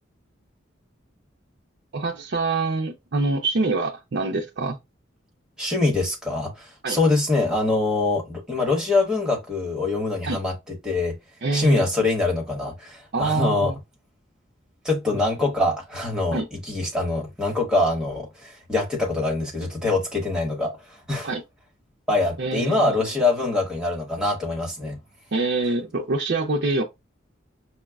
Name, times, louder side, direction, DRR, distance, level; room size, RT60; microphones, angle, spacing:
voice 1, 1.9-4.8 6.8-7.0 10.3-10.4 11.4-11.9 13.1-13.8 16.3-16.5 21.2-21.4 22.4-23.1 25.3-26.8, right 3 dB, 60° right, 0.5 m, -25 dB
voice 2, 5.6-11.2 11.5-13.7 14.8-21.3 22.1-25.0, left 2 dB, 5° right, 1.1 m, -24 dB
5.8 x 2.1 x 2.3 m
head